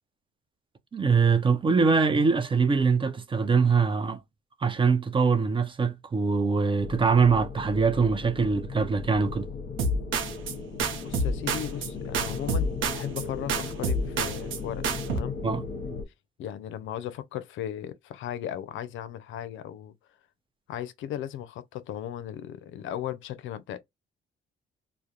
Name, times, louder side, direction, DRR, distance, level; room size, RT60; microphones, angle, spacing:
voice 1, 0.9-4.2 4.6-9.5 15.4-15.6, right 5 dB, 25° right, 0.4 m, -23 dB
sound 1, 6.8-16.0, left 4 dB, 45° left, 0.8 m, -37 dB
sound 2, 9.8-10.5 10.8-11.9 12.1-13.2 13.5-14.6 14.8-15.2, right 2 dB, 80° right, 0.6 m, -28 dB
voice 2, 11.0-15.3 16.4-19.9 20.7-23.8, left 11 dB, 75° left, 0.4 m, -36 dB
2.3 x 2.1 x 2.7 m
cardioid pair, 90°, 20 cm